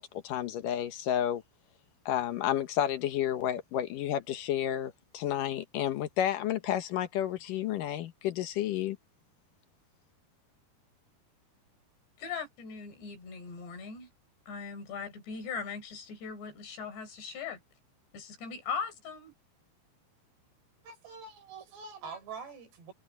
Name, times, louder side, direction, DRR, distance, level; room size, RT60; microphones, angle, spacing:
voice 1, 0.0-1.4 2.1-9.0, left 11 dB, 70° left, 2.3 m, -31 dB
voice 2, 12.2-14.1 14.5-17.6 18.1-19.3, left 5 dB, 90° left, 6.3 m, -39 dB
voice 3, 20.8-22.9, right 5 dB, 80° right, 6.3 m, -45 dB
omnidirectional pair, 4.7 m